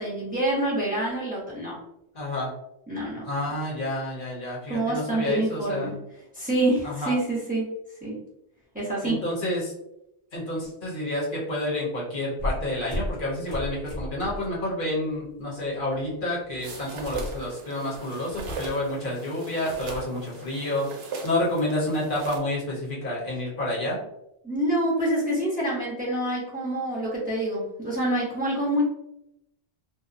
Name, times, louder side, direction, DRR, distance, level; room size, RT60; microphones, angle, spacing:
voice 1, 0.0-1.8 2.9-3.2 4.7-6.0 6.3-7.7 8.0-8.2 8.7-9.2 24.4-28.8, right 1 dB, 10° right, -6 dB, 0.6 m, -26 dB
voice 2, 2.1-2.5 3.2-6.0 6.8-7.1 9.0-9.7 10.3-20.9 21.2-24.0, left 1 dB, 55° left, -4 dB, 0.9 m, -29 dB
sound 1, 12.4-14.6 15.0-15.3 15.7-17.4, left 1 dB, 30° left, 0.7 m, -34 dB
sound 2, 16.6-22.4, right 3 dB, 80° right, 0.8 m, -39 dB
2.7 x 2.1 x 2.4 m, 0.82 s
omnidirectional pair, 1.1 m